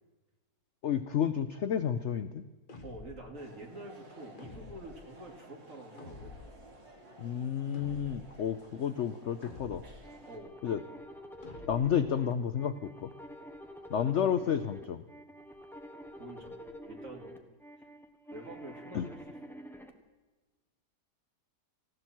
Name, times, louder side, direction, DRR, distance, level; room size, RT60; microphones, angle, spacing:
voice 1, 0.8-2.4 7.2-9.8 10.6-10.8 11.7-13.1 13.9-15.0 18.9-19.1, left 8 dB, 65° left, 11 dB, 0.7 m, -31 dB
sound 1, 2.7-3.3 4.4-5.1 6.0-6.6 7.7-8.4 9.4-10.1 11.4-12.1, left 3 dB, 30° left, 1.4 m, -49 dB
voice 2, 2.8-6.5 10.3-10.5 14.1-14.3 16.2-16.6 16.9-17.3 17.7-17.9 18.3-19.6, right 1 dB, 45° right, 1 dB, 3.1 m, -47 dB
sound 2, 3.3-10.4, right 2 dB, 90° right, 3.5 m, -55 dB
sound 3, 10.0-19.9, equal, ahead, 1.2 m, -48 dB
19.0 x 15.5 x 4.5 m, 1.2 s
omnidirectional pair, 1.9 m